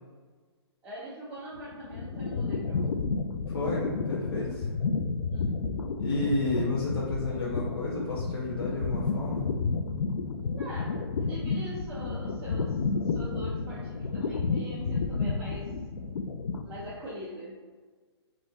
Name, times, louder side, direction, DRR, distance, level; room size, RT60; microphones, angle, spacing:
voice 1, 0.8-3.0 5.3-5.6 10.4-15.8 16.6-17.6, right 1 dB, 10° right, -10 dB, 0.6 m, -43 dB
sound 1, 1.5-17.0, left 4 dB, 90° left, 0.5 m, -31 dB
voice 2, 3.5-4.6 6.0-9.5, left 2 dB, 65° left, -7 dB, 1.2 m, -31 dB
3.8 x 3.0 x 4.1 m, 1.4 s
hypercardioid pair, 170°, 14 cm